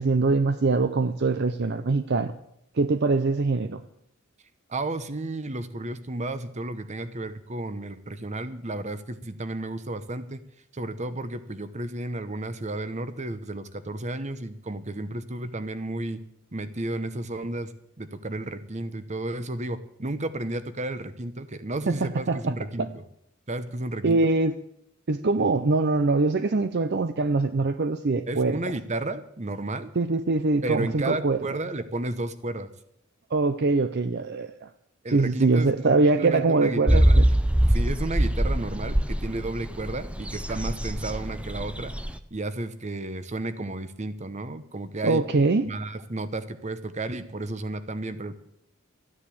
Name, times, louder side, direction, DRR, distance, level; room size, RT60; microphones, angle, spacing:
voice 1, 0.0-2.3 2.8-3.8 22.0-22.5 24.0-24.6 25.1-28.6 30.0-31.4 33.3-34.7 35.1-37.2 45.0-45.6, right 3 dB, 50° right, 11 dB, 0.6 m, -23 dB
voice 2, 4.7-10.4 10.7-16.2 16.5-23.0 23.5-24.3 28.3-29.9 30.6-32.7 35.0-37.2 37.6-41.9 42.3-45.2 45.6-48.4, right 2 dB, 35° right, 12 dB, 1.0 m, -32 dB
sound 1, 36.9-42.2, right 1 dB, 5° right, 0.6 m, -23 dB
13.5 x 9.9 x 8.5 m, 0.75 s
head